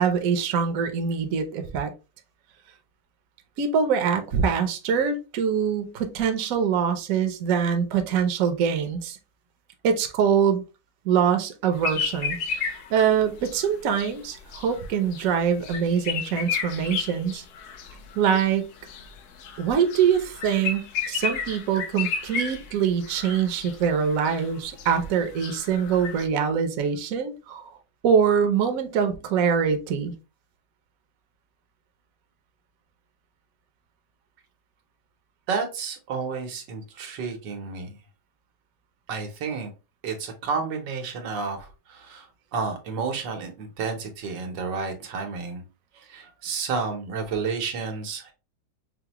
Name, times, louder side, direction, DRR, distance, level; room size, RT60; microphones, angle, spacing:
voice 1, 0.0-1.9 3.6-9.2 9.8-10.6 11.0-17.4 18.2-18.6 19.6-27.7 28.0-30.1, right 7 dB, 60° right, 1.0 m, -24 dB
sound 1, 11.8-26.3, left 6 dB, 70° left, 1.1 m, -33 dB
voice 2, 35.5-38.0 39.1-39.7 40.0-45.6 46.0-48.3, right 5 dB, 85° right, 1.6 m, -31 dB
5.7 x 2.1 x 2.9 m
omnidirectional pair, 1.9 m